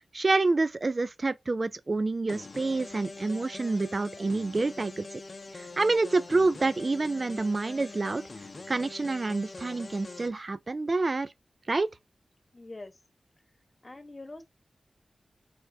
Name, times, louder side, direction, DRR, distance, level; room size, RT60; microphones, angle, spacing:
voice 1, 0.1-5.2 5.5-8.2 8.7-11.3 11.7-11.9, right 3 dB, 50° right, 0.4 m, -28 dB
sound 1, 2.3-10.3, left 3 dB, 55° left, 0.6 m, -44 dB
voice 2, 12.5-12.9 13.8-14.4, left 2 dB, 35° left, 1.1 m, -44 dB
4.3 x 2.2 x 4.4 m
cardioid pair, 45°, 0 cm